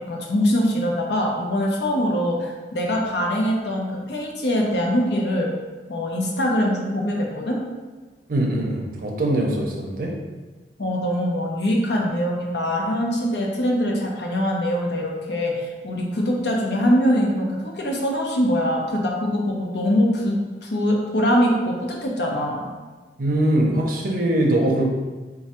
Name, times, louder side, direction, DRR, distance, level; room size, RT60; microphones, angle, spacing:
voice 1, 0.0-5.5 5.9-7.6 10.8-22.6, equal, 70° left, -1 dB, 0.7 m, -23 dB
voice 2, 8.3-10.1 23.2-24.9, right 1 dB, 50° right, -1 dB, 0.6 m, -22 dB
3.4 x 2.3 x 4.2 m, 1.3 s
head